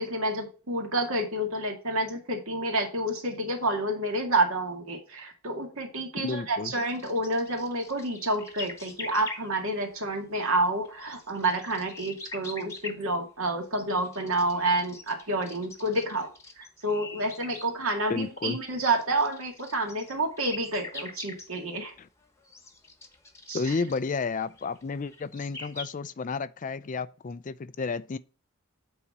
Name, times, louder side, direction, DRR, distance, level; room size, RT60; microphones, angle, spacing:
voice 1, 0.0-16.3 16.6-21.9 23.5-23.7, right 2 dB, 70° right, 2.2 m, -29 dB
voice 2, 6.2-6.7 18.1-18.6 22.0-22.1 23.5-28.2, left 4 dB, 35° left, 0.4 m, -31 dB
sound 1, 6.6-10.0 10.7-13.1 13.8-17.7 18.1-18.2 18.7-21.5 21.9-25.8, left 3 dB, 15° left, 1.1 m, -44 dB
8.5 x 4.1 x 4.7 m
head